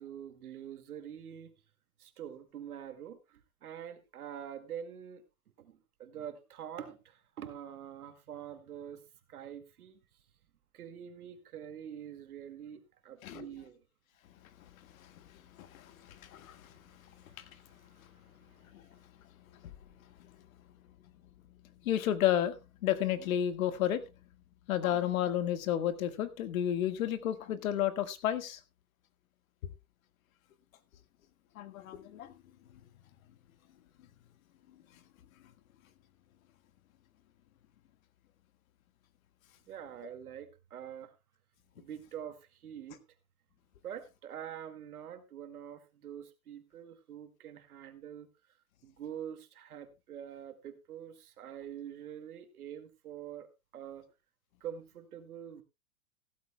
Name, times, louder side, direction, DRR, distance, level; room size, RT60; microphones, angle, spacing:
voice 1, 0.0-1.5 2.0-5.2 5.6-9.0 9.3-10.0 10.7-13.8 17.2-18.8 39.7-41.1 41.8-43.0 43.8-48.3 48.8-54.1 54.6-55.6, right 9 dB, 85° right, 8 dB, 2.1 m, -46 dB
voice 2, 21.8-22.5 22.8-24.0 24.7-28.6 31.6-32.3, left 11 dB, 70° left, 11 dB, 1.7 m, -31 dB
16.0 x 13.0 x 2.2 m, 0.24 s
hypercardioid pair, 130°, 43 cm